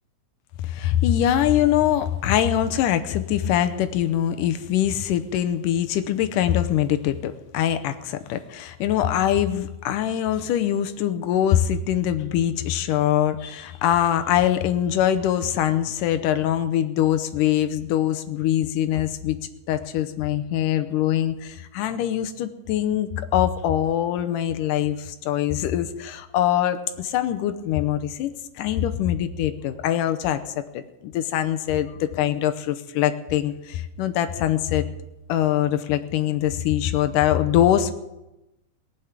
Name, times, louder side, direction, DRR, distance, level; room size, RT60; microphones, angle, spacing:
voice 1, 0.6-19.4 19.7-30.4 30.7-34.9 35.3-37.9, left 11 dB, 85° left, 9 dB, 2.3 m, -23 dB
19.0 x 7.2 x 8.1 m, 0.96 s
omnidirectional pair, 3.8 m